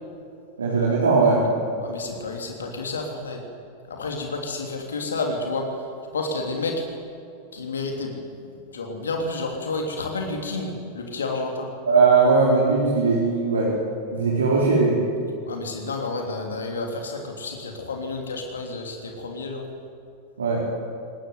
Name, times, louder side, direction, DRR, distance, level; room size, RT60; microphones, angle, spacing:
voice 1, 0.6-1.4 11.9-13.7 14.1-14.9 20.4-20.6, right 4 dB, 70° right, -5 dB, 4.7 m, -19 dB
voice 2, 1.8-3.4 3.9-5.8 6.1-6.8 7.5-8.2 8.5-11.7 15.5-19.6, left 3 dB, 70° left, 2 dB, 3.3 m, -30 dB
23.0 x 20.0 x 9.6 m, 2.5 s
figure-of-eight pair, 90°, 0 cm